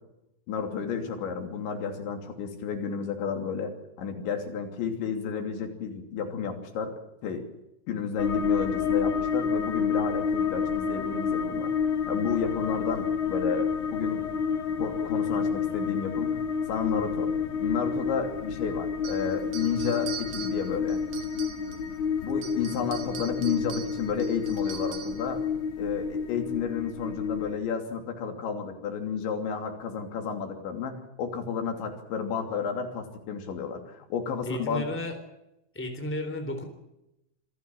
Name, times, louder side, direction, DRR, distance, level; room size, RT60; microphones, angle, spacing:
voice 1, 0.5-3.7 4.0-7.0 7.2-7.5 7.9-11.7 12.1-14.2 14.8-16.4 16.7-17.3 17.6-21.0 22.2-25.4 25.8-34.8, left 6 dB, 80° left, 5 dB, 5.2 m, -31 dB
sound 1, 8.2-27.6, left 6 dB, 60° left, 1.3 m, -29 dB
sound 2, 19.0-21.9 22.3-25.3, right 10 dB, 65° right, 3.6 m, -42 dB
voice 2, 34.4-35.2 35.7-36.6, left 1 dB, 5° left, 6 dB, 3.2 m, -33 dB
27.0 x 16.0 x 8.9 m, 0.88 s
omnidirectional pair, 5.1 m